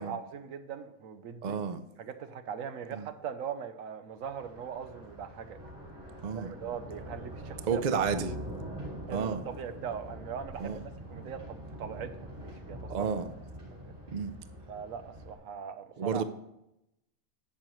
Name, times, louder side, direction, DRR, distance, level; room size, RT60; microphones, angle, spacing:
voice 1, 0.0-1.6 2.0-5.6 6.3-8.1 9.1-10.8 11.1-13.1 13.9-14.0 14.7-16.2, right 7 dB, 75° right, 10 dB, 1.1 m, -40 dB
voice 2, 1.4-1.8 2.9-3.1 6.2-6.5 7.7-8.3 9.1-9.4 10.6-10.8 12.9-13.3 14.1-14.3 16.0-16.2, right 6 dB, 60° right, 11 dB, 0.4 m, -31 dB
Thunder, 4.2-15.3, right 1 dB, 25° right, 3.0 m, -44 dB
11.0 x 7.6 x 3.1 m, 0.87 s
omnidirectional pair, 1.4 m